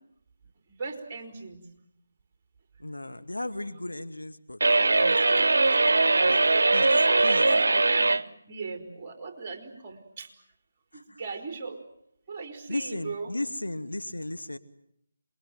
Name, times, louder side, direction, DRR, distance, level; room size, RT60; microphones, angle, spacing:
voice 1, 0.7-1.6 7.0-10.3 10.9-11.8 12.3-13.3, right 4 dB, 25° right, 6 dB, 4.5 m, -38 dB
voice 2, 2.8-4.6 4.9-6.4 6.7-7.5 10.9-11.2 12.7-14.6, left 1 dB, 90° left, 9 dB, 2.1 m, -36 dB
sound 1, 4.6-8.2, right 3 dB, 65° right, 1.0 m, -21 dB
27.5 x 21.5 x 9.4 m, 0.73 s
figure-of-eight pair, 155°, 0 cm